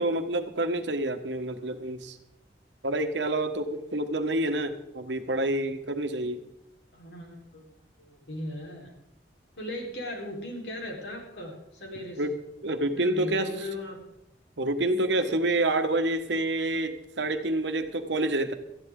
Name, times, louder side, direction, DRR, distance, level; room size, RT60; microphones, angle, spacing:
voice 1, 0.0-2.2 2.8-6.4 12.2-12.3 12.6-13.5 14.6-18.5, right 1 dB, 80° right, 7 dB, 1.3 m, -28 dB
voice 2, 6.9-8.9 9.6-12.4 12.9-14.0, left 1 dB, 75° left, 0 dB, 4.3 m, -38 dB
18.5 x 14.0 x 3.8 m, 0.86 s
head